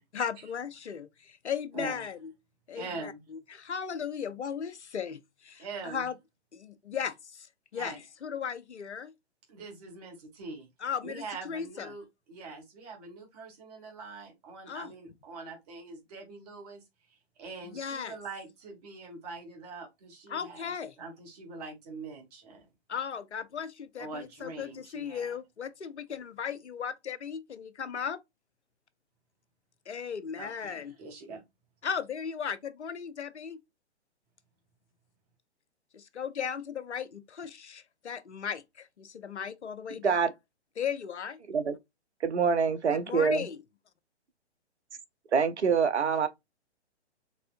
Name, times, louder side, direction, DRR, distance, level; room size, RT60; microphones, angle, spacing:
voice 1, 0.1-2.3 2.7-6.1 6.5-7.5 7.7-9.1 10.8-11.9 14.7-14.9 17.6-18.1 20.3-20.9 22.9-28.2 29.9-30.9 31.8-33.6 35.9-40.2 40.8-41.4 42.9-43.6, left 7 dB, 75° left, 0.6 m, -36 dB
voice 2, 2.7-3.2 5.6-6.1 7.7-8.0 9.5-10.7 11.0-16.8 17.1-22.6 24.0-25.3 30.3-31.4, right 3 dB, 35° right, 1.4 m, -43 dB
voice 3, 42.2-43.4 45.3-46.3, right 6 dB, 75° right, 0.6 m, -25 dB
4.2 x 2.6 x 2.4 m
figure-of-eight pair, 125°, 34 cm